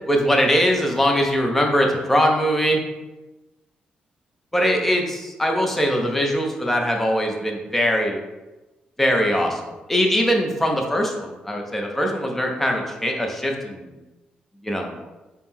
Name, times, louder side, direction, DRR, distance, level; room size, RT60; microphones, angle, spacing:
voice 1, 0.1-2.8 4.5-8.2 9.0-13.9 14.6-14.9, equal, 5° left, 1 dB, 0.5 m, -21 dB
4.3 x 2.1 x 3.6 m, 1.1 s
cardioid pair, 130°, 3 cm